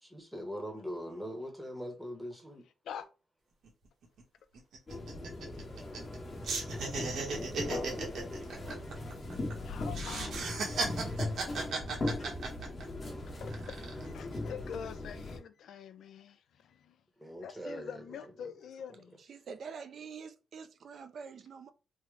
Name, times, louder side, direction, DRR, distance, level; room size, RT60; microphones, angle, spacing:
voice 1, 0.0-2.6 17.2-18.5 18.9-19.0, equal, 5° right, 0.8 m, -42 dB
sound 1, 3.6-3.7 4.0-4.2 4.5-6.2 6.4-9.5 9.9-13.0 13.5-14.1, right 3 dB, 75° right, 1.0 m, -36 dB
sound 2, 4.9-15.4, left 2 dB, 30° left, 0.9 m, -39 dB
voice 2, 9.6-11.1 13.4-13.5 14.1-16.4 16.6-16.9 17.4-19.2, left 8 dB, 80° left, 0.4 m, -45 dB
voice 3, 19.3-21.7, right 6 dB, 55° right, 0.3 m, -46 dB
3.5 x 2.1 x 3.1 m
wide cardioid pair, 155°, 0 cm